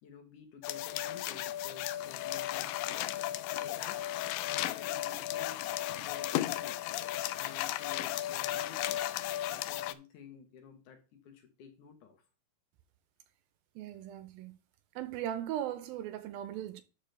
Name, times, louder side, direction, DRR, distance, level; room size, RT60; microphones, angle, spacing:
voice 1, 0.0-3.1 3.5-4.1 4.5-6.9 7.3-9.0 9.5-12.2, left 6 dB, 65° left, 2.3 m, -52 dB
sound 1, 0.6-9.9, left 14 dB, 90° left, 1.9 m, -35 dB
voice 2, 13.8-14.6 15.0-16.8, right 11 dB, 80° right, 2.3 m, -38 dB
12.0 x 5.3 x 3.4 m
omnidirectional pair, 4.4 m